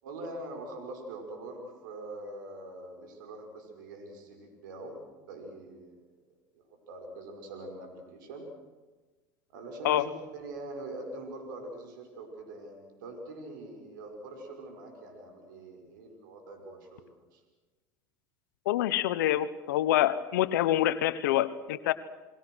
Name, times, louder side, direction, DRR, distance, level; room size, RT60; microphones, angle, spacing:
voice 1, 0.0-6.0 6.5-8.4 9.5-17.4, right 2 dB, 85° right, 4 dB, 5.5 m, -43 dB
voice 2, 18.6-21.9, left 13 dB, 85° left, 13 dB, 1.0 m, -26 dB
30.0 x 21.0 x 6.3 m, 1.3 s
supercardioid pair, 95°, 10 cm